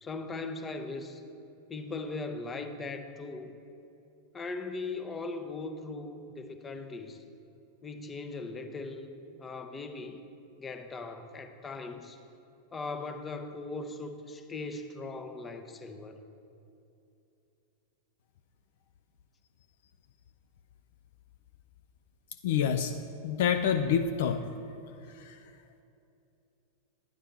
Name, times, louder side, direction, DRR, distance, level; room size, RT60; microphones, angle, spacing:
voice 1, 0.0-1.2 1.7-3.5 4.3-7.2 7.8-10.2 10.6-12.2 12.7-16.2, left 3 dB, 20° left, 7 dB, 0.7 m, -39 dB
voice 2, 22.4-22.9 23.2-24.5 25.3-25.4, left 8 dB, 55° left, 7 dB, 0.4 m, -27 dB
10.5 x 9.9 x 3.4 m, 2.7 s
figure-of-eight pair, 90°, 0 cm